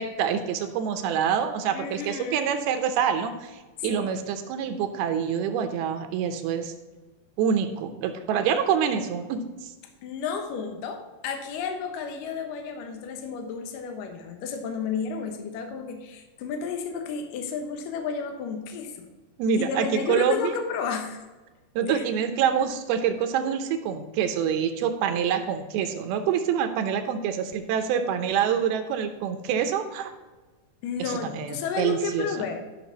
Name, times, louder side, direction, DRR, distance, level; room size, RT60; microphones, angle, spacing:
voice 1, 0.0-6.7 7.4-9.7 19.4-20.6 21.8-30.1 31.0-32.5, right 7 dB, 80° right, 8 dB, 2.6 m, -26 dB
voice 2, 1.7-2.5 3.9-4.2 10.0-19.1 19.6-21.2 21.9-22.0 30.8-32.6, left 6 dB, 70° left, 5 dB, 2.4 m, -32 dB
12.5 x 6.0 x 4.0 m, 1.2 s
omnidirectional pair, 4.6 m